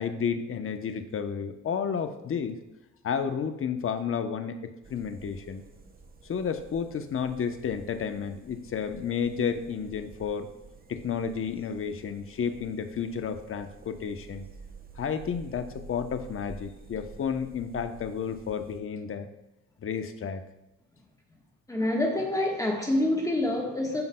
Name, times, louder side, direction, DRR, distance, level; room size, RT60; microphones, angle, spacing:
voice 1, 0.0-2.6 3.0-5.6 6.2-10.5 10.9-14.5 15.0-19.3 19.8-20.4, left 7 dB, 45° left, 7 dB, 0.8 m, -31 dB
sound 1, 4.8-18.8, right 3 dB, 30° right, 0.9 m, -50 dB
voice 2, 21.7-24.0, left 1 dB, 10° left, -1 dB, 1.4 m, -26 dB
13.5 x 5.4 x 2.3 m, 0.96 s
cardioid pair, 90°, 30 cm